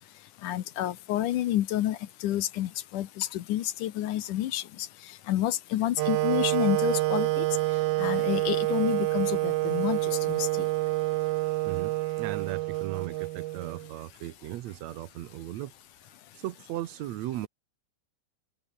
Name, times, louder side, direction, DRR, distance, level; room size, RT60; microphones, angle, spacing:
voice 1, 0.4-4.9 5.3-7.5 8.0-10.7, left 13 dB, 65° left, 2.3 m, -29 dB
Wind instrument woodwind instrument, 6.0-13.9, right 19 dB, 90° right, 2.6 m, -28 dB
voice 2, 11.6-15.7 16.3-17.5, right 14 dB, 75° right, 1.6 m, -37 dB
open air
omnidirectional pair, 4.3 m